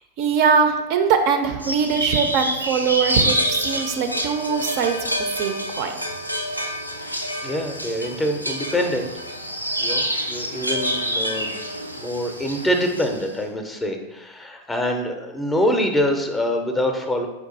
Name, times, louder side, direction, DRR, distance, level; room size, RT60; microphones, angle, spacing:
voice 1, 0.2-5.1 5.4-5.9, right 6 dB, 45° right, 5 dB, 0.4 m, -21 dB
sound 1, 1.6-13.3, equal, 90° left, 0.4 m, -27 dB
voice 2, 7.4-9.1 9.8-11.6 12.0-17.3, equal, 10° left, 4 dB, 0.5 m, -25 dB
4.5 x 2.4 x 3.9 m, 1.1 s
figure-of-eight pair, 90°, 0 cm